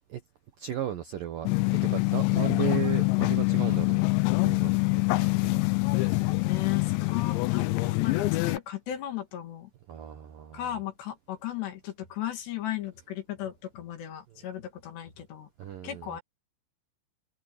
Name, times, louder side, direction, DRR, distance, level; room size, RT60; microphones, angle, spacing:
voice 1, 0.6-4.0 4.4-4.8 5.2-5.6 5.9-6.3 9.9-10.7 15.6-16.2, right 10 dB, 70° right, 2.1 m, -36 dB
sound 1, 1.5-8.6, left 24 dB, 80° left, 2.7 m, -25 dB
voice 2, 6.4-9.7 10.5-15.5 15.8-16.2, left 12 dB, 60° left, 4.2 m, -36 dB
omnidirectional pair, 5.8 m